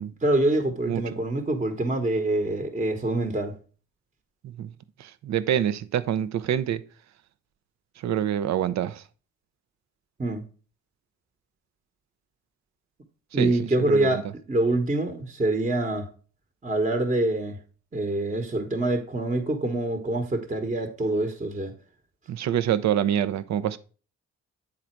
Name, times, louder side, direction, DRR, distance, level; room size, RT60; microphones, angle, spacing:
voice 1, 0.2-3.5 10.2-10.4 13.3-16.1 16.6-17.6 17.9-21.7, right 2 dB, 25° right, 1.2 m, -25 dB
voice 2, 5.0-6.8 8.0-9.0 13.3-13.5 13.8-14.1 22.3-23.8, right 10 dB, 65° right, 0.7 m, -26 dB
8.6 x 3.9 x 4.5 m
cardioid pair, 90°, 30 cm